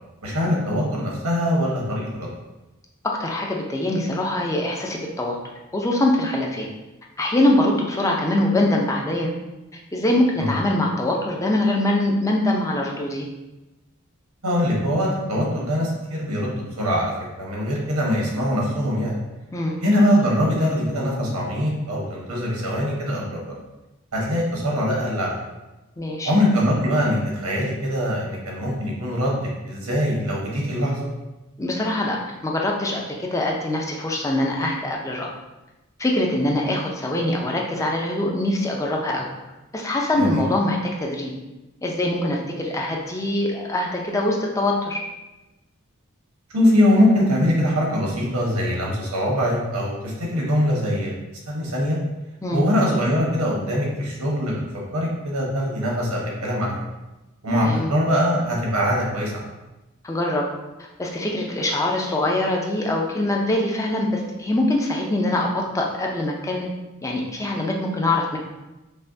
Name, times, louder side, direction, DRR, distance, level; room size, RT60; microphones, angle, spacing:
voice 1, 0.2-2.3 10.4-10.5 14.4-19.2 19.8-23.6 24.1-25.3 26.2-31.1 40.2-40.4 46.5-51.2 51.5-52.0 52.5-56.7 57.4-59.4, equal, 85° right, -3 dB, 1.1 m, -22 dB
voice 2, 3.0-5.4 5.7-6.7 7.2-9.3 9.9-13.3 19.5-19.8 26.0-26.3 31.6-32.2 32.4-35.3 36.0-39.3 39.7-41.3 41.8-45.0 52.4-52.6 57.5-57.9 60.0-60.5 60.8-66.7 67.0-68.4, left 1 dB, 15° left, -1 dB, 0.5 m, -23 dB
5.4 x 2.2 x 2.7 m, 1.0 s
head